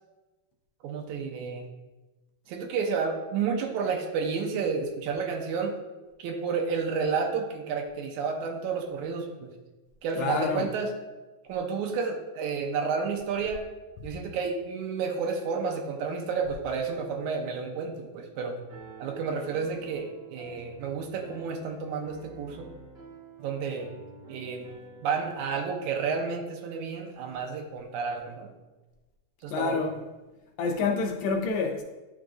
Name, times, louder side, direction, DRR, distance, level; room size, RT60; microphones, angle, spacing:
voice 1, 0.8-1.7 2.5-5.8 6.2-9.5 10.0-10.9 11.5-13.6 14.0-18.6 19.0-22.7 23.4-23.9 24.3-24.6 25.0-28.5 29.4-29.8, right 5 dB, 90° right, 2.1 m, -31 dB
voice 2, 10.2-10.7 29.5-30.0 30.6-31.8, left 4 dB, 75° left, 1.9 m, -27 dB
Piano, 18.7-25.5, right 4 dB, 60° right, 1.1 m, -49 dB
10.0 x 4.7 x 2.5 m
omnidirectional pair, 3.4 m